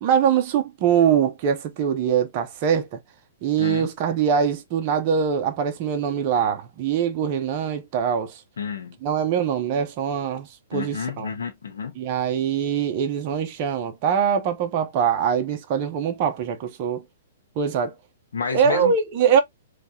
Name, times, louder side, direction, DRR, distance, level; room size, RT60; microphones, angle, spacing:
voice 1, 0.0-3.0 3.4-8.4 9.0-11.3 12.0-17.0 17.6-17.9 18.5-19.4, right 7 dB, 40° right, 0.8 m, -23 dB
voice 2, 3.6-3.9 8.6-9.0 10.7-11.9 18.3-18.9, left 6 dB, 85° left, 0.7 m, -30 dB
3.1 x 2.4 x 2.7 m
hypercardioid pair, 140°, 0 cm